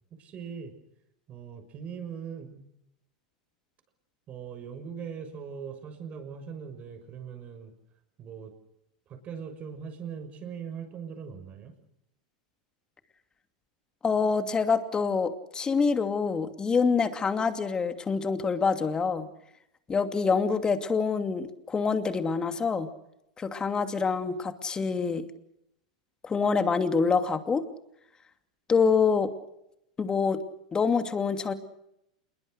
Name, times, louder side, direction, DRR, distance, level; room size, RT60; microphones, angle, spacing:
voice 1, 0.1-0.7 1.3-2.7 4.3-7.7 8.2-8.5 9.1-11.7, right 7 dB, 35° right, 8 dB, 6.3 m, -40 dB
voice 2, 14.0-19.3 19.9-22.9 23.4-25.2 26.2-27.6 28.7-29.3 30.0-30.4 30.7-31.5, left 5 dB, 20° left, 8 dB, 2.6 m, -26 dB
27.5 x 22.0 x 6.6 m, 0.81 s
hypercardioid pair, 100°, 4 cm